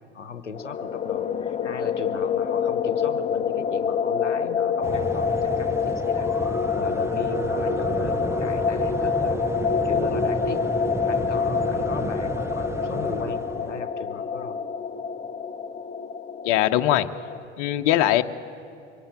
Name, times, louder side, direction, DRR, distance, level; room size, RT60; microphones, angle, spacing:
voice 1, 0.0-10.6 11.1-14.6, left 5 dB, 85° left, 11 dB, 0.9 m, -37 dB
sound 1, 0.5-17.4, left 6 dB, 20° left, 1.0 m, -27 dB
sound 2, 4.8-13.8, right 3 dB, 10° right, 0.6 m, -32 dB
voice 2, 16.4-17.1 17.6-18.2, left 13 dB, 50° left, 8 dB, 0.9 m, -20 dB
24.0 x 17.0 x 8.9 m, 2.5 s
figure-of-eight pair, 70°, 35 cm